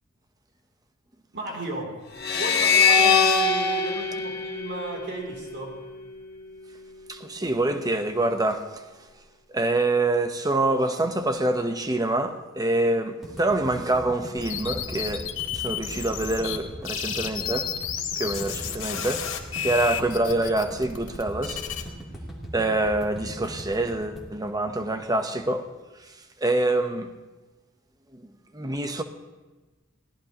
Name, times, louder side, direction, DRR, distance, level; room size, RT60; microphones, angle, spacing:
voice 1, 1.3-2.0 2.3-5.8, right 2 dB, 60° right, 3.2 m, -34 dB
sound 1, 2.2-5.5, left 5 dB, 50° left, 1.6 m, -22 dB
voice 2, 7.1-8.8 9.5-17.7 18.2-19.3 19.6-21.6 22.5-25.7 26.0-26.1 26.4-27.1 28.1-29.0, right 2 dB, 20° right, 1.0 m, -26 dB
sound 2, 13.2-25.4, right 1 dB, ahead, 3.2 m, -40 dB
sound 3, 14.4-16.6 16.8-21.8, left 9 dB, 70° left, 1.8 m, -32 dB
23.0 x 17.5 x 3.0 m
head